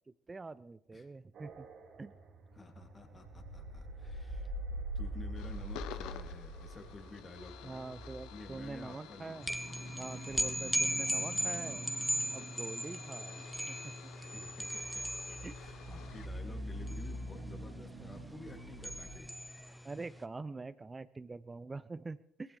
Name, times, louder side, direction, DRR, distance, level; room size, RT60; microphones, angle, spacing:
voice 1, 0.3-1.7 2.0-2.1 7.6-9.5 10.0-11.9 12.3-13.9 15.3-15.6 18.0-18.2 19.8-22.6, right 3 dB, 25° right, 15 dB, 0.4 m, -45 dB
sound 1, 1.3-19.1, right 1 dB, 55° right, 1.9 m, -45 dB
voice 2, 2.5-4.5 4.9-8.0 8.3-9.4 14.2-19.3, left 3 dB, 30° left, 3 dB, 2.6 m, -51 dB
sound 2, 5.3-16.3, left 11 dB, 70° left, 0.8 m, -52 dB
sound 3, 9.4-20.1, equal, ahead, 1.2 m, -38 dB
20.0 x 15.5 x 3.3 m, 0.89 s
hypercardioid pair, 55°, 0 cm